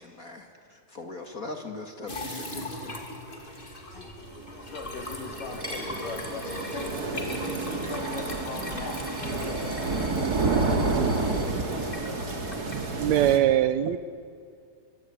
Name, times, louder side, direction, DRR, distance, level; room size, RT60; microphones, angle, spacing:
voice 1, 0.0-3.1 3.9-4.4, left 2 dB, 35° left, 5 dB, 1.6 m, -41 dB
sound 1, 2.1-13.0, left 2 dB, 15° left, 2.5 m, -39 dB
sound 2, 4.4-13.4, right 3 dB, 30° right, 2.6 m, -30 dB
voice 2, 4.5-12.0 13.2-13.4, left 4 dB, 75° left, 4 dB, 4.1 m, -41 dB
Coin (dropping), 5.6-11.5, equal, 10° right, 3.7 m, -46 dB
voice 3, 12.7-14.0, right 11 dB, 70° right, 14 dB, 1.9 m, -23 dB
25.5 x 23.0 x 9.6 m, 2.3 s
omnidirectional pair, 3.8 m